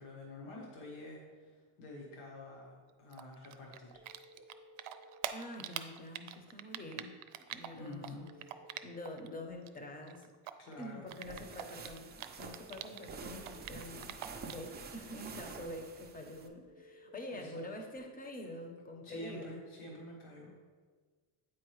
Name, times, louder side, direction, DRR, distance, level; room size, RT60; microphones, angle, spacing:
voice 1, 0.0-3.9 7.7-8.3 10.6-11.0 17.3-17.7 19.0-20.5, left 1 dB, 80° left, -2 dB, 1.5 m, -48 dB
Typing, 3.1-9.3 9.5-13.1 13.4-14.7, right 12 dB, 85° right, 0.5 m, -44 dB
sound 1, 3.9-5.4 8.2-9.6 12.4-13.8 16.6-18.0, equal, 45° right, 0.8 m, -58 dB
voice 2, 5.3-7.2 7.5-8.1 8.8-10.3 10.8-12.1 12.4-14.2 14.4-19.6, left 1 dB, 20° left, 4 dB, 0.7 m, -46 dB
sound 2, 11.1-16.5, right 4 dB, 20° right, 0.4 m, -48 dB
8.6 x 4.2 x 3.1 m, 1.5 s
cardioid pair, 130°, 48 cm